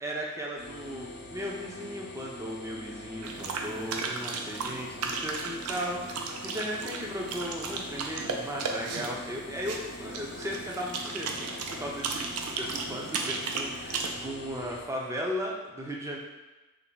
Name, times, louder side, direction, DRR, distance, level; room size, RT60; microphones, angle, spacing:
voice 1, 0.0-16.2, equal, 15° right, -2 dB, 0.4 m, -36 dB
sound 1, 0.6-14.9, left 2 dB, 50° left, 0.5 m, -44 dB
sound 2, 3.2-14.1, right 4 dB, 75° right, 0.4 m, -35 dB
3.3 x 2.2 x 3.9 m, 1.1 s
head